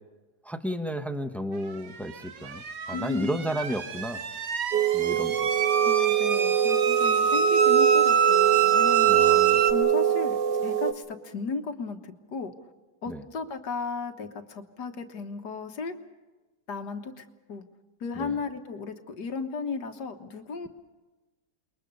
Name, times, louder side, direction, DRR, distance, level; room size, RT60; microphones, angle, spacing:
voice 1, 0.4-4.2 4.9-5.5 9.0-9.6 13.1-13.2 18.2-18.4, equal, ahead, 7 dB, 0.9 m, -33 dB
sound 1, 2.1-9.7, right 7 dB, 60° right, 1.4 m, -25 dB
voice 2, 2.9-3.4 5.8-9.3 9.7-10.4 10.6-12.5 13.0-16.0 16.7-17.6 18.0-20.7, left 4 dB, 75° left, 6 dB, 1.9 m, -35 dB
sound 2, 4.7-10.9, right 10 dB, 75° right, 1.6 m, -24 dB
28.5 x 21.5 x 5.4 m, 1.2 s
omnidirectional pair, 1.8 m